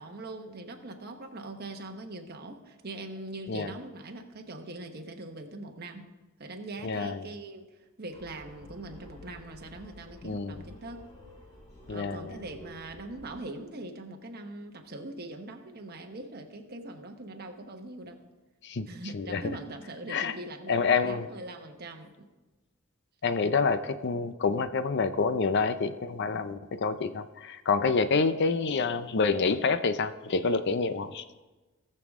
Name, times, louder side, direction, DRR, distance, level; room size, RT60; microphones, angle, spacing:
voice 1, 0.0-6.1 6.4-7.7 8.0-11.0 11.9-18.2 18.9-22.3, right 2 dB, 50° right, 4 dB, 1.1 m, -42 dB
voice 2, 6.8-7.3 10.2-10.6 11.9-12.4 18.6-18.9 19.1-19.4 20.1-20.3 20.7-21.3 23.2-31.2, left 4 dB, 55° left, 12 dB, 0.5 m, -27 dB
sound 1, 8.1-13.3, left 1 dB, 30° left, 2.3 m, -51 dB
18.0 x 6.8 x 3.6 m, 1.2 s
head